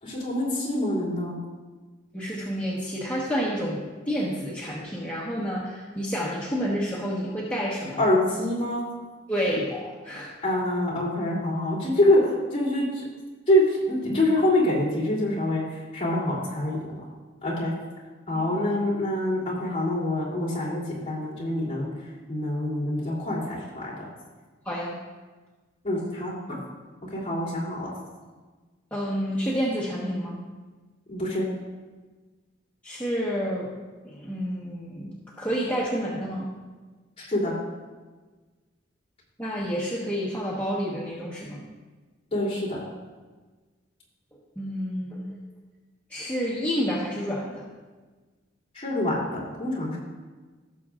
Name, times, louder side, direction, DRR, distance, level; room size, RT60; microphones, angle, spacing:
voice 1, 0.0-1.3 8.0-8.9 10.4-13.0 13.5-15.6 15.9-17.0 17.4-17.7 18.3-21.9 22.3-24.0 25.8-26.6 27.1-27.9 31.1-31.4 37.2-37.6 42.3-42.8 48.7-50.0, left 1 dB, 30° left, -6 dB, 3.0 m, -25 dB
voice 2, 2.1-8.1 9.3-10.3 18.3-18.4 24.6-25.0 28.9-30.4 32.8-33.7 34.0-36.5 39.4-41.6 44.6-45.4 46.1-47.6, equal, 10° left, -7 dB, 1.2 m, -29 dB
17.0 x 7.0 x 2.5 m, 1.3 s
head